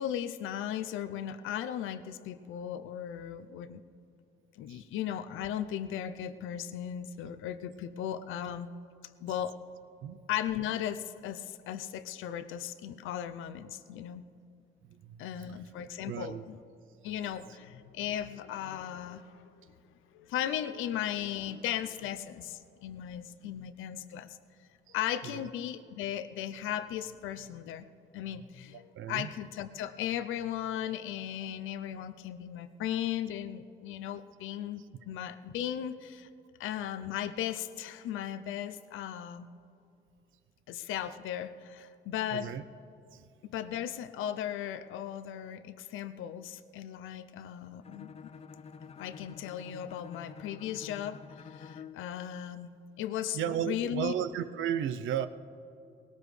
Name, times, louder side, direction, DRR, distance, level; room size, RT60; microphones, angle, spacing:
voice 1, 0.0-3.8 4.6-8.7 9.2-9.6 10.3-14.2 15.2-16.6 17.0-19.4 20.1-24.4 24.9-27.8 28.1-36.3 36.6-39.5 40.7-42.5 43.5-48.3 49.0-51.2 51.5-52.7 53.0-53.4 53.6-54.1, left 10 dB, 85° left, 12 dB, 0.6 m, -36 dB
voice 2, 14.9-15.5 16.1-16.5 17.0-17.2 24.9-25.0 25.2-25.5 28.9-29.3 42.3-42.6 43.1-43.3 53.3-55.3, right 9 dB, 80° right, 11 dB, 0.7 m, -34 dB
Bowed string instrument, 47.8-52.1, left 6 dB, 30° left, 0.4 m, -48 dB
20.5 x 18.0 x 3.3 m, 2.6 s
cardioid pair, 90°, 20 cm